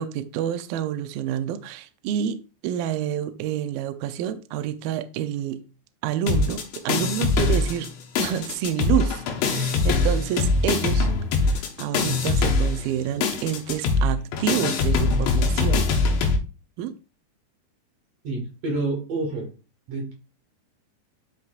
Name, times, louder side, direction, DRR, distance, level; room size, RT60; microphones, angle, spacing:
voice 1, 0.0-5.6 6.0-7.9 8.2-11.1 11.4-15.9 16.8-17.0, right 10 dB, 85° right, 2.0 m, -28 dB
sound 1, 6.3-7.9 8.2-16.4, left 3 dB, 85° left, 3.5 m, -22 dB
voice 2, 18.2-19.5 19.9-20.1, right 2 dB, 55° right, 2.0 m, -28 dB
12.0 x 4.7 x 2.4 m
omnidirectional pair, 4.9 m